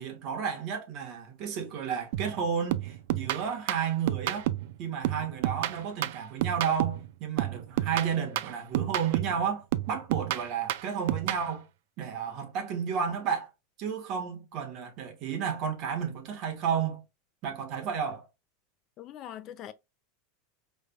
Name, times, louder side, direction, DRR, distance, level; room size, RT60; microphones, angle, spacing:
voice 1, 0.0-4.5 4.8-11.6 12.0-13.5 13.8-17.0 17.4-18.3, right 7 dB, 35° right, 1.3 m, -32 dB
sound 1, 2.1-2.4 2.7-4.7 5.0-7.1 7.4-9.4 9.7-11.5, right 14 dB, 60° right, 0.4 m, -30 dB
voice 2, 19.0-19.7, left 11 dB, 30° left, 0.3 m, -42 dB
5.2 x 3.3 x 2.2 m
supercardioid pair, 165°, 0 cm